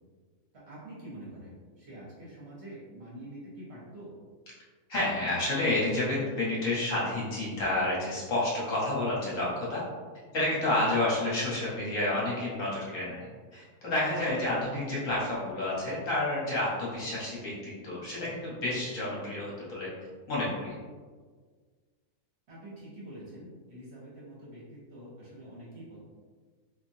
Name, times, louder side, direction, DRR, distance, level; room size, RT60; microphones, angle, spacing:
voice 1, 0.5-4.1 14.5-14.7 22.5-26.0, right 1 dB, 50° right, -7 dB, 1.0 m, -46 dB
voice 2, 4.9-9.8 10.3-19.9 20.3-20.8, left 2 dB, 60° left, -7 dB, 1.4 m, -30 dB
3.7 x 2.6 x 2.6 m, 1.5 s
omnidirectional pair, 1.6 m